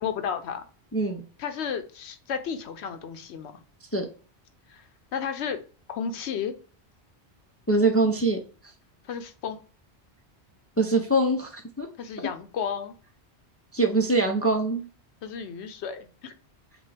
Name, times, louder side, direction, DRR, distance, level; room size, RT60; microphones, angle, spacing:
voice 1, 0.0-0.6 1.4-3.6 4.7-4.8 5.1-5.6 5.9-6.5 9.0-9.6 12.0-12.9 15.2-16.3, left 7 dB, 85° left, 8 dB, 0.9 m, -33 dB
voice 2, 0.9-1.2 3.9-4.1 7.7-8.4 10.8-11.9 13.7-14.8, right 2 dB, 20° left, 3 dB, 0.3 m, -23 dB
6.1 x 2.3 x 3.3 m, 0.39 s
omnidirectional pair, 1.1 m